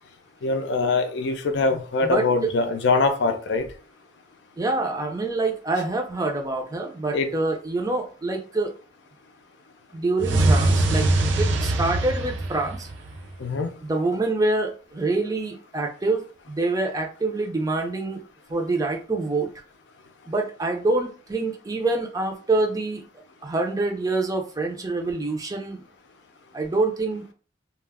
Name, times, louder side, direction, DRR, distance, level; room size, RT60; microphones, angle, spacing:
voice 1, 0.4-3.7 7.1-7.3 13.4-13.7, left 3 dB, 70° left, 0.4 m, -23 dB
voice 2, 2.0-2.5 4.6-8.7 9.9-11.1 11.4-12.9 13.8-18.2 18.5-19.5 20.3-23.0 23.4-25.9 26.5-27.3, right 2 dB, 20° right, 0.4 m, -26 dB
sound 1, 10.2-13.4, right 2 dB, 75° right, 0.5 m, -22 dB
2.3 x 2.0 x 3.4 m
head